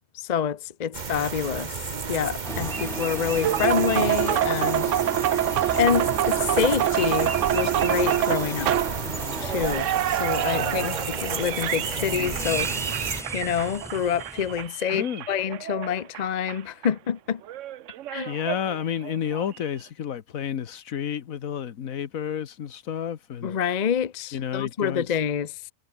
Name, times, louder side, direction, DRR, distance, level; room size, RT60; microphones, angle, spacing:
voice 1, 0.1-1.8 2.1-4.9 5.7-9.0 9.4-12.7 13.3-17.4 18.1-18.3 23.4-25.5, left 8 dB, 40° left, 0.6 m, -27 dB
sound 1, 0.9-13.2, right 5 dB, 35° right, 1.1 m, -32 dB
sound 2, 2.4-14.7, equal, ahead, 1.2 m, -36 dB
sound 3, 3.4-16.6 16.8-16.9 17.5-19.5, right 12 dB, 65° right, 0.9 m, -27 dB
voice 2, 10.5-11.0 14.9-15.2 18.3-23.6 24.3-25.1, left 9 dB, 65° left, 1.4 m, -31 dB
omnidirectional pair, 1.6 m